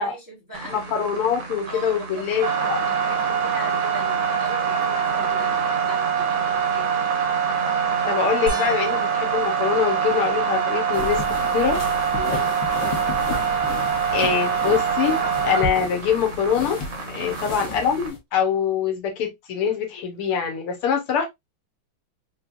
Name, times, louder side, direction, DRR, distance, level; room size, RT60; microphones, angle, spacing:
voice 1, 0.0-0.8 1.7-7.0 8.2-8.3 12.1-12.6 17.1-17.4, right 1 dB, 10° right, 1.8 m, -40 dB
sound 1, 0.5-18.1, right 6 dB, 85° right, 2.3 m, -24 dB
voice 2, 0.7-2.8 8.1-11.8 14.1-16.8 17.1-21.3, left 7 dB, 80° left, 1.9 m, -24 dB
sound 2, 8.5-11.1 11.7-12.2 12.6-12.7 15.9-16.0, equal, 60° right, 2.0 m, -38 dB
sound 3, 10.9-18.2, left 4 dB, 60° left, 1.7 m, -33 dB
4.7 x 3.1 x 2.5 m
omnidirectional pair, 2.4 m